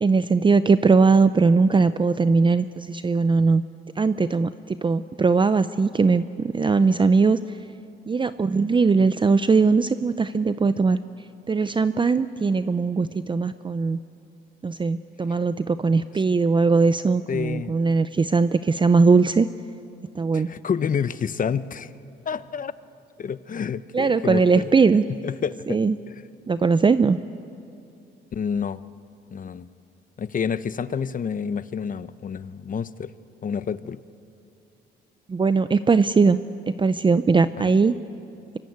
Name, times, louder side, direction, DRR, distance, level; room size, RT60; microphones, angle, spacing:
voice 1, 0.0-3.6 4.0-7.4 8.1-11.0 11.5-14.0 14.6-19.5 20.2-20.5 23.9-25.0 25.7-25.9 26.5-27.2 35.3-36.4 36.7-37.9, right 4 dB, 25° right, 12 dB, 0.6 m, -20 dB
voice 2, 17.3-17.7 20.3-21.9 22.3-22.7 23.2-24.7 25.2-25.8 26.1-26.2 28.3-28.8 29.3-29.7 30.2-33.1 33.4-34.0 37.6-37.7, left 7 dB, 40° left, 14 dB, 0.9 m, -29 dB
25.0 x 24.0 x 9.5 m, 2.6 s
cardioid pair, 90°, 20 cm